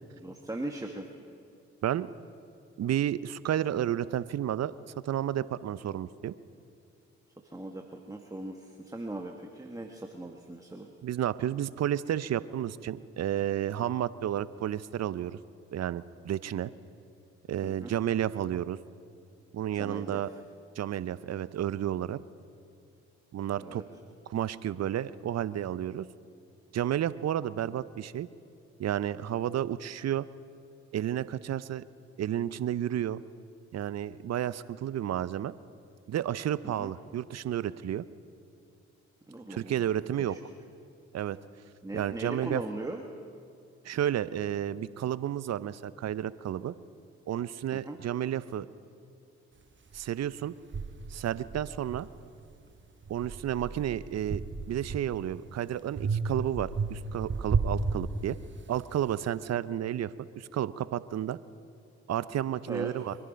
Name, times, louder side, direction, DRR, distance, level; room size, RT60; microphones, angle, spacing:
voice 1, 0.2-1.1 7.5-10.9 17.6-17.9 19.7-20.2 23.6-23.8 36.6-36.9 39.3-39.9 40.2-40.4 41.8-43.0 47.7-48.0 62.7-62.9, right 2 dB, 10° right, 3 dB, 1.4 m, -39 dB
voice 2, 2.8-4.7 5.0-6.3 11.0-15.4 15.7-16.7 17.5-18.8 19.5-20.3 20.8-22.2 23.3-23.8 24.3-26.1 26.7-28.3 28.8-30.3 30.9-31.8 32.2-33.2 33.7-35.5 36.1-38.0 39.5-40.4 41.1-41.4 41.9-42.6 43.8-46.7 47.3-48.7 49.9-50.5 51.1-52.1 53.1-54.4 54.7-58.4 58.7-61.4 62.1-63.2, right 11 dB, 60° right, 17 dB, 0.7 m, -31 dB
sound 1, 49.9-50.0 50.7-52.6 53.0-55.4 56.0-58.7, right 4 dB, 40° right, 1.1 m, -33 dB
24.0 x 11.0 x 5.2 m, 2.4 s
hypercardioid pair, 45°, 30 cm